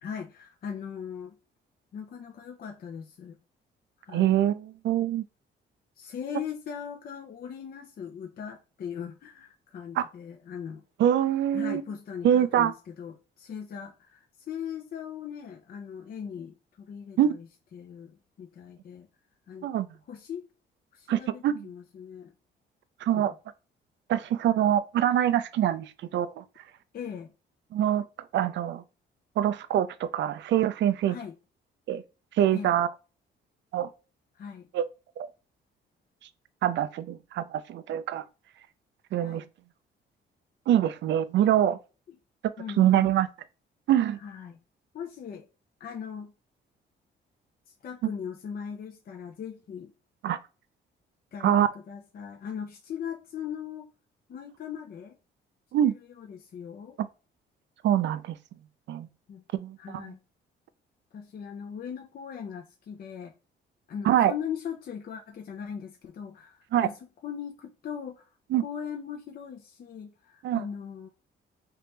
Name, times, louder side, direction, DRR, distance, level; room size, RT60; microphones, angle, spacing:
voice 1, 0.0-1.4 1.9-3.4 4.0-4.3 6.0-10.8 11.5-19.1 19.5-20.5 20.9-22.3 23.1-23.3 26.9-27.3 31.0-31.4 32.5-32.8 34.3-34.7 39.2-39.5 42.1-42.2 42.6-43.1 44.2-44.6 44.9-45.5 45.8-46.3 47.7-49.9 51.3-53.9 54.3-55.2 55.8-57.0 59.3-59.4 59.8-60.2 61.1-63.3 63.9-68.3 68.6-71.1, left 7 dB, 50° left, 0.5 m, -39 dB
voice 2, 4.1-5.2 10.0-10.1 11.0-11.8 12.2-12.7 17.2-17.3 19.6-19.9 21.1-21.7 23.0-23.3 24.1-26.4 27.7-28.0 28.3-28.8 29.4-31.2 31.9-32.0 32.4-32.9 33.7-33.9 34.7-34.9 35.2-35.3 36.6-38.2 39.1-39.4 40.7-41.8 42.8-43.3 43.9-44.2 50.2-50.4 51.4-51.7 55.7-55.9 57.8-58.4 58.9-59.1 59.5-60.1 64.1-64.3 66.7-66.9 68.5-68.6 70.4-70.6, right 11 dB, 65° right, 0.4 m, -24 dB
3.3 x 2.9 x 3.2 m
cardioid pair, 90°, 20 cm